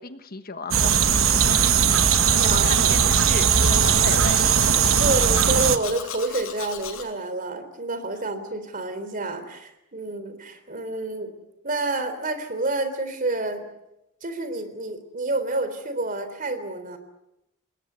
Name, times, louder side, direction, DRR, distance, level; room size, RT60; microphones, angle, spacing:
voice 1, 0.0-1.8 2.4-4.4, left 3 dB, 45° left, 9 dB, 1.3 m, -35 dB
sound 1, 0.7-5.8, right 7 dB, 75° right, 1.2 m, -19 dB
Domestic sounds home sounds, 0.8-7.0, left 7 dB, 70° left, 5.9 m, -36 dB
voice 2, 4.9-11.3 11.6-13.6 14.2-17.0, right 2 dB, 40° right, 10 dB, 3.6 m, -29 dB
28.5 x 20.5 x 8.2 m, 0.89 s
head